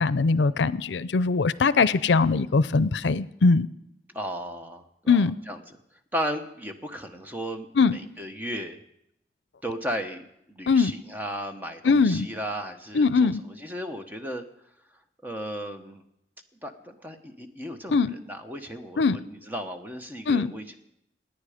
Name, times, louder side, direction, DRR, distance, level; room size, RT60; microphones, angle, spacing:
voice 1, 0.0-3.7 5.1-5.4 7.8-8.0 10.7-10.9 11.8-12.3 12.9-13.4 17.9-18.1 19.0-19.2 20.3-20.5, left 4 dB, 85° left, 17 dB, 0.5 m, -21 dB
voice 2, 4.1-5.6 6.1-8.8 9.6-14.4 15.2-16.0 16.6-20.7, equal, 10° right, 6 dB, 1.1 m, -35 dB
28.0 x 9.7 x 5.0 m, 0.77 s
head